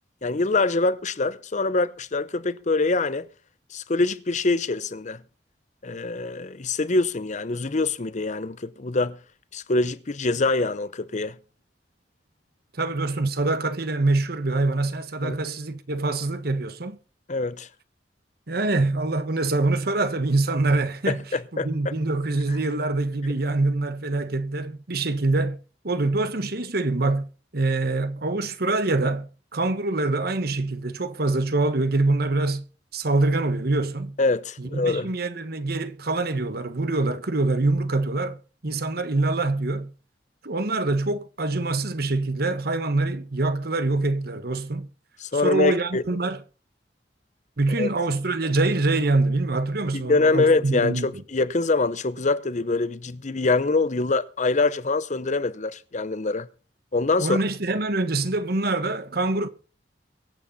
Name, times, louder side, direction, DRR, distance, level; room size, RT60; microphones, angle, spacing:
voice 1, 0.2-3.3 3.7-5.2 5.8-9.2 9.5-11.4 15.2-15.4 17.3-17.7 21.1-21.9 34.2-35.1 45.2-46.0 47.8-47.9 49.9-56.5 56.9-57.4, left 3 dB, 45° left, 0.8 m, -24 dB
voice 2, 12.7-17.0 18.5-21.2 21.6-25.6 25.8-27.3 27.5-32.6 32.9-34.2 34.6-38.4 38.6-39.9 40.4-44.9 45.4-46.4 47.6-51.1 57.2-59.5, right 2 dB, 60° right, 1.4 m, -25 dB
23.5 x 8.4 x 4.2 m
head